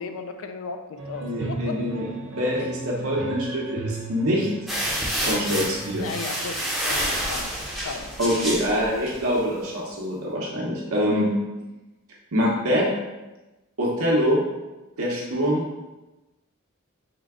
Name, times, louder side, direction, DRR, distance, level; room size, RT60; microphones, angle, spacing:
voice 1, 0.0-1.8 2.4-2.7 6.0-7.5 7.8-8.2, left 4 dB, 65° left, 7 dB, 0.4 m, -35 dB
sound 1, 1.0-6.9, right 3 dB, 60° right, 0.6 m, -36 dB
voice 2, 1.2-2.1 2.3-4.5 5.2-6.1 8.2-11.3 12.3-12.9 13.8-14.4 15.0-15.6, equal, 80° right, -3 dB, 1.0 m, -24 dB
sound 2, 4.7-9.3, equal, ahead, 0.6 m, -28 dB
3.8 x 2.2 x 3.6 m, 1.1 s
head